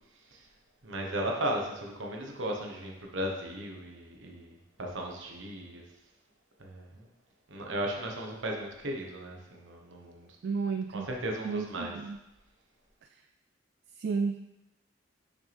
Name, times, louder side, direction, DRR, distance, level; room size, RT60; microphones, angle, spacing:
voice 1, 0.8-5.8 6.6-7.1 7.5-10.3 10.9-11.9, right 1 dB, 75° right, 1 dB, 1.2 m, -36 dB
voice 2, 10.4-11.1 11.4-12.2 14.0-14.4, right 5 dB, 60° right, 7 dB, 0.3 m, -32 dB
6.5 x 6.1 x 3.5 m, 0.93 s
head